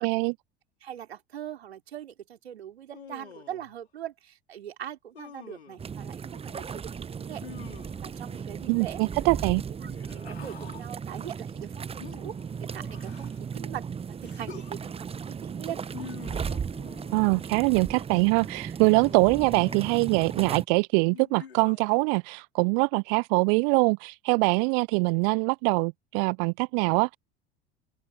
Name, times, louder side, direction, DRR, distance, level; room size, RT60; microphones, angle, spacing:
voice 1, 0.0-0.3 8.7-9.6 17.1-27.2, right 40 dB or more, 45° right, 0.5 m, -23 dB
voice 2, 0.8-7.4 8.0-9.0 9.8-12.4 12.7-13.9 14.2-15.8, right 10 dB, 70° right, 4.0 m, -41 dB
Human voice, 2.9-3.7 5.1-5.8 7.4-8.2 9.8-10.9 12.0-13.5 14.2-14.8 15.9-17.5 18.9-20.1 21.1-22.0, left 7 dB, 80° left, 5.0 m, -47 dB
sound 1, 5.8-20.7, right 6 dB, 20° right, 1.0 m, -36 dB
figure-of-eight pair, 75°, 32 cm